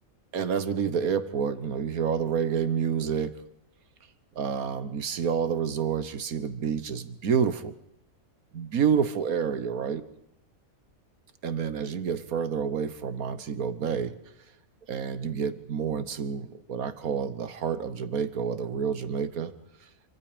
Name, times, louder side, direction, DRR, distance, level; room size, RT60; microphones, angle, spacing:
voice 1, 0.3-3.4 4.3-7.7 8.5-10.0 11.4-14.1 14.9-19.5, right 7 dB, 85° right, 12 dB, 1.7 m, -28 dB
26.5 x 25.0 x 5.1 m, 0.78 s
omnidirectional pair, 1.5 m